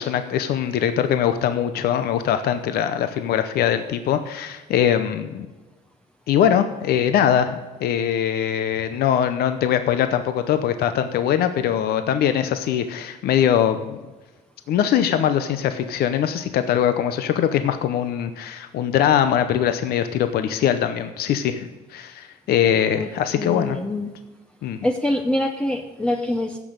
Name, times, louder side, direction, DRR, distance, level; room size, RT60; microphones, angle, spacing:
voice 1, 0.0-5.5 6.3-14.0 14.7-23.8 24.6-24.8, left 9 dB, 65° left, 9 dB, 0.7 m, -22 dB
voice 2, 23.4-24.1 24.8-26.6, left 1 dB, 5° left, 4 dB, 0.6 m, -24 dB
15.0 x 6.1 x 5.2 m, 1.2 s
cardioid pair, 110°, 17 cm